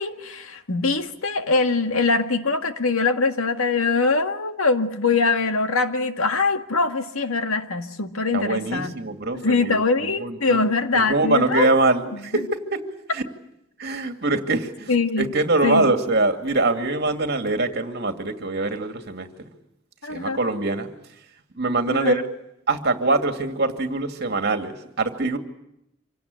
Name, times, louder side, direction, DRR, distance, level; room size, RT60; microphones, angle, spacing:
voice 1, 0.0-8.9 9.4-11.8 14.9-15.3 15.6-15.9 20.0-20.4 21.9-22.2, left 3 dB, 90° left, 7 dB, 1.9 m, -23 dB
voice 2, 8.3-10.6 11.1-12.8 13.1-13.2 13.8-14.9 15.2-19.3 20.1-20.9 21.5-22.2 22.7-25.4, right 2 dB, 50° right, 6 dB, 2.5 m, -23 dB
26.5 x 17.5 x 9.7 m, 0.80 s
head